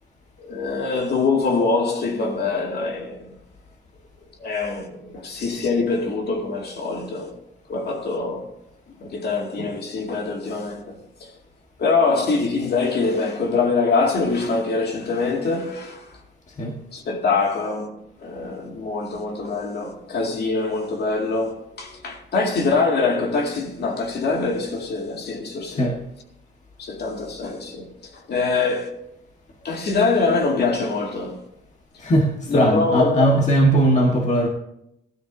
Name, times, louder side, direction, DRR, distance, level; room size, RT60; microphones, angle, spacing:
voice 1, 0.4-3.3 4.4-7.4 7.7-8.5 9.0-11.3 11.8-16.0 16.9-26.0 26.8-28.9 29.6-31.4 32.5-33.4, left 4 dB, 55° left, 2.3 m, -24 dB
voice 2, 16.5-16.8 25.7-26.0 32.0-34.5, right 1 dB, 35° left, 1.5 m, -19 dB
16.5 x 12.5 x 2.7 m
cardioid pair, 90°, 20 cm